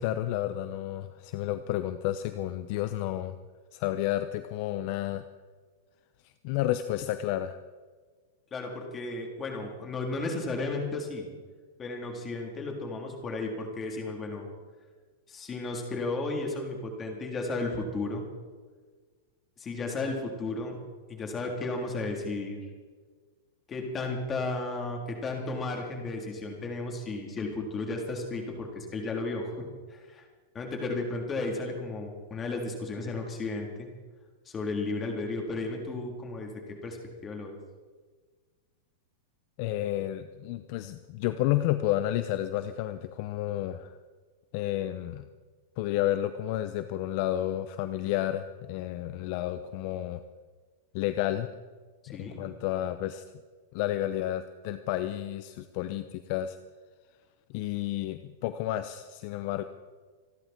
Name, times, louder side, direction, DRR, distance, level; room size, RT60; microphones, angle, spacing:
voice 1, 0.0-3.3 3.7-5.2 6.2-7.6 39.6-44.0 44.5-45.3 45.8-50.2 50.9-51.5 52.1-53.2 53.7-56.6 57.5-59.6, left 13 dB, 50° left, 11 dB, 0.8 m, -31 dB
voice 2, 8.5-11.3 11.8-14.5 15.3-18.2 19.6-20.7 21.1-22.6 23.7-29.5 29.9-30.3 30.5-33.9 34.5-37.0 37.2-37.6 52.1-52.4, left 3 dB, 20° left, 1 dB, 3.7 m, -34 dB
27.5 x 10.5 x 4.5 m, 1.4 s
supercardioid pair, 140°, 0 cm